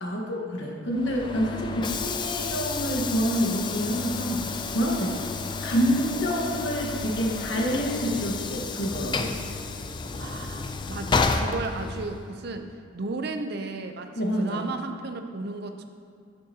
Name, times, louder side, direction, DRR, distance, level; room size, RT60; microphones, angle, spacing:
voice 1, 0.0-4.4 4.7-5.1 5.6-9.4 14.2-14.7, equal, 70° left, -1 dB, 1.3 m, -27 dB
Train / Sliding door, 0.9-12.3, left 4 dB, 25° left, 0.3 m, -31 dB
voice 2, 10.2-12.7 12.9-15.9, right 3 dB, 55° right, 7 dB, 0.5 m, -34 dB
11.0 x 6.5 x 2.8 m, 2.3 s
head